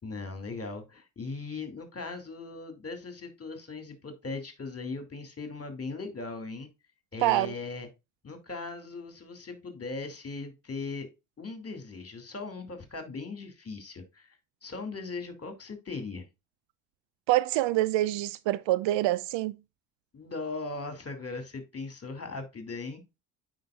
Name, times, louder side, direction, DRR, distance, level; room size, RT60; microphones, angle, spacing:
voice 1, 0.0-6.7 7.1-7.9 8.2-11.1 11.4-16.3 20.1-23.0, left 3 dB, 30° left, 2.6 m, -39 dB
voice 2, 7.2-7.5 17.3-19.6, right 16 dB, 65° right, 0.6 m, -26 dB
9.2 x 5.1 x 2.4 m
hypercardioid pair, 55°, 48 cm